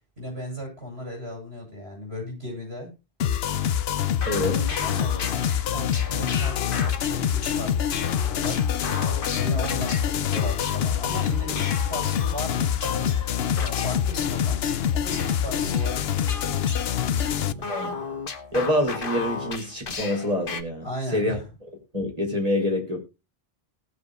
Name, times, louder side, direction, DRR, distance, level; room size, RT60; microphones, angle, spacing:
voice 1, 0.2-2.9 4.4-5.3 5.7-6.7 7.0-8.6 9.1-14.6 14.9-16.6 17.0-17.6 20.8-21.4, equal, 80° right, 8.4 m, -36 dB
sound 1, 3.2-17.5, left 9 dB, 75° left, 0.9 m, -25 dB
sound 2, 3.9-12.5 12.8-20.6, left 4 dB, 60° left, 1.4 m, -36 dB
voice 2, 4.3-4.6 17.6-18.0 18.5-20.9 21.1-21.4 21.9-23.0, left 1 dB, 35° right, 4.2 m, -26 dB
19.0 x 7.5 x 2.4 m
omnidirectional pair, 1.0 m